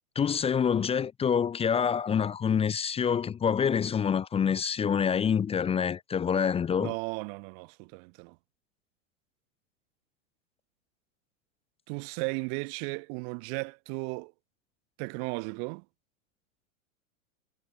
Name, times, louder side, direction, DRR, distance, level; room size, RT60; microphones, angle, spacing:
voice 1, 0.1-6.9, left 7 dB, 15° left, 0.8 m, -26 dB
voice 2, 6.8-8.3 11.9-14.3 15.0-15.8, right 40 dB or more, 45° right, 0.9 m, -35 dB
hypercardioid pair, 125°, 38 cm